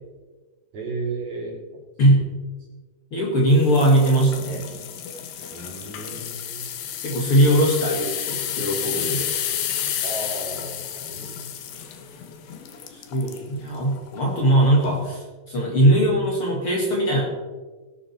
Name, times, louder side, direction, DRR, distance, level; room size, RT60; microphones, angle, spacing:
voice 1, 0.7-1.6 5.5-6.6 7.6-8.1 10.0-11.4 13.3-13.4, right 2 dB, 50° right, -2 dB, 4.4 m, -34 dB
voice 2, 3.1-4.6 7.0-9.3 12.9-17.2, right 1 dB, 45° left, -2 dB, 2.4 m, -20 dB
sound 1, 3.6-13.5 14.0-14.2 14.7-14.8, left 9 dB, 80° left, 3.0 m, -31 dB
18.5 x 10.0 x 4.3 m, 1.3 s
omnidirectional pair, 4.2 m